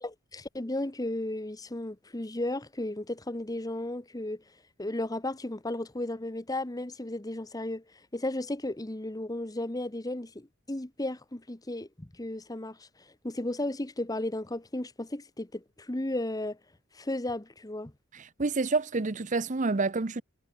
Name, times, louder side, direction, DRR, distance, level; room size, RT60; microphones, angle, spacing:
voice 1, 0.0-4.4 4.8-7.8 8.1-12.9 13.2-16.6 16.9-17.9, left 1 dB, 15° left, 1.0 m, -34 dB
voice 2, 18.1-20.2, right 3 dB, 35° right, 0.7 m, -28 dB
head